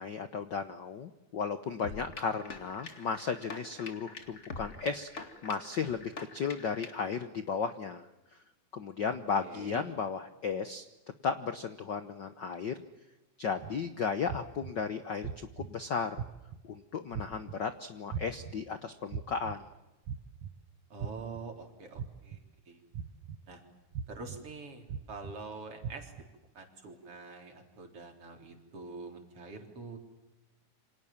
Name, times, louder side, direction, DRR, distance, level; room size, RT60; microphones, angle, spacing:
voice 1, 0.0-8.1 8.7-10.8 11.2-12.8 13.4-15.3 15.6-16.2 16.6-19.6, left 5 dB, 65° left, 10 dB, 1.1 m, -35 dB
sound 1, 1.8-7.2, left 3 dB, 25° left, 2.1 m, -45 dB
voice 2, 9.4-9.8 13.7-13.8 20.9-22.4 22.7-22.8 23.5-23.6 24.1-26.1 26.5-30.0, right 3 dB, 50° right, 4 dB, 4.7 m, -45 dB
sound 2, 13.6-13.7 14.3-14.7 15.2-15.7 16.2-16.6 17.1-17.6 18.1-18.5 19.1-19.5 20.1-20.5 21.0-21.4 22.0-22.4 22.9-23.4 23.9-24.4 24.9-25.3 25.8-26.2, right 7 dB, 80° right, 2.8 m, -38 dB
28.5 x 26.0 x 7.3 m, 1.0 s
omnidirectional pair, 3.4 m